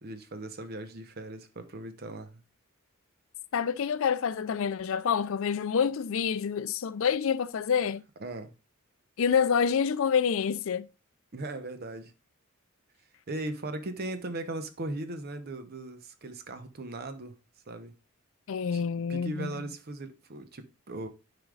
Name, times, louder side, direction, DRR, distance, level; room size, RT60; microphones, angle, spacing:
voice 1, 0.0-2.4 8.2-8.5 11.3-12.1 13.3-17.3 17.7-17.9 18.7-21.1, right 2 dB, 45° right, 0.8 m, -38 dB
voice 2, 3.5-8.0 9.2-10.9 18.5-19.5, left 7 dB, 65° left, 0.4 m, -27 dB
9.5 x 5.1 x 2.3 m
head